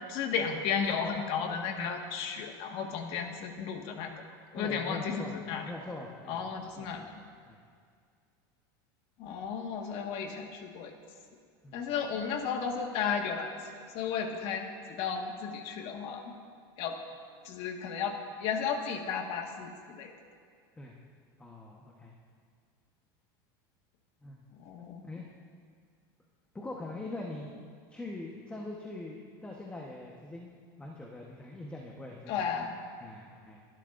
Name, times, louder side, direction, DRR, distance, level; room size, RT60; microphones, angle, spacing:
voice 1, 0.1-4.1 4.5-5.6 6.3-7.0 9.2-11.0 11.7-13.5 13.9-16.3 16.8-17.0 17.4-20.1 24.6-25.0 32.3-32.8, left 6 dB, 55° left, 3 dB, 1.7 m, -34 dB
voice 2, 4.5-5.3 5.6-6.4 6.7-7.1 7.5-7.6 11.6-11.8 20.8-20.9 21.4-22.1 24.2-24.3 25.0-25.2 26.5-27.5 27.9-30.5 30.8-32.5 33.0-33.6, left 2 dB, 10° left, -2 dB, 1.2 m, -42 dB
26.5 x 12.0 x 2.6 m, 2.1 s
supercardioid pair, 135°, 12 cm